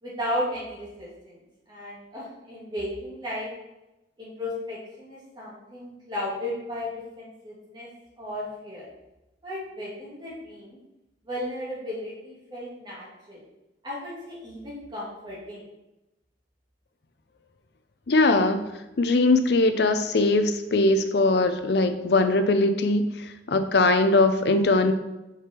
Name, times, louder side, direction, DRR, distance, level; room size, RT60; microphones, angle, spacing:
voice 1, 0.0-3.5 4.2-7.9 8.2-8.9 9.4-10.8 11.2-13.4 13.8-15.6, left 1 dB, 25° right, -7 dB, 2.3 m, -35 dB
voice 2, 18.1-18.6 19.0-24.9, left 2 dB, 65° left, 8 dB, 0.5 m, -21 dB
5.1 x 4.9 x 4.4 m, 0.97 s
head